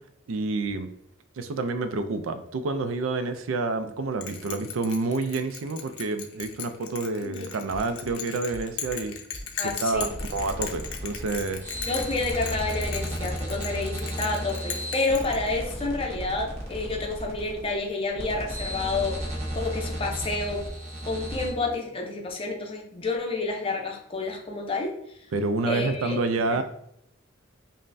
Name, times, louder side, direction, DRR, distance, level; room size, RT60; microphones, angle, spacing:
voice 1, 0.3-0.9 1.4-9.2 9.6-11.6 25.3-26.6, right 3 dB, 75° right, 10 dB, 0.4 m, -28 dB
Bell, 4.2-15.9, left 8 dB, 90° left, 0.5 m, -37 dB
sound 1, 7.7-8.1 8.5-8.9 9.3-9.7 10.1-10.5 10.9-11.4 11.7-12.2 12.5-12.7, equal, 5° right, 1.1 m, -42 dB
voice 2, 9.6-10.1 11.9-19.2 19.5-20.7 21.0-25.2 25.7-26.6, left 3 dB, 25° left, 1 dB, 0.5 m, -29 dB
sound 2, 9.9-21.5, equal, 35° right, 0.8 m, -34 dB
5.3 x 2.1 x 2.6 m, 0.74 s
head